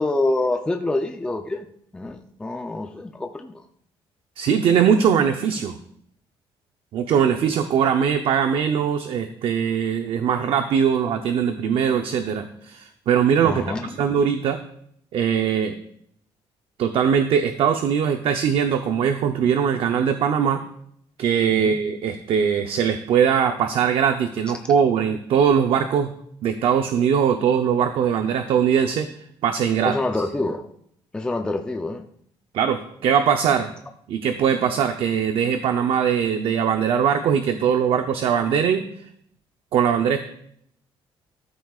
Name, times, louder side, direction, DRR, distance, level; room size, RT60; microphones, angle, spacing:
voice 1, 0.0-1.7 1.9-3.6 13.4-13.9 21.5-21.8 29.9-30.6 31.1-32.0, left 2 dB, 10° left, 4 dB, 0.6 m, -26 dB
voice 2, 4.4-5.8 6.9-13.6 14.0-14.6 15.1-15.8 16.8-20.6 21.2-26.1 26.4-29.1 29.4-29.9 32.5-33.7 34.1-38.8 39.7-40.2, right 7 dB, 65° right, 7 dB, 0.7 m, -21 dB
13.5 x 13.0 x 2.4 m, 0.69 s
cardioid pair, 145°, 10 cm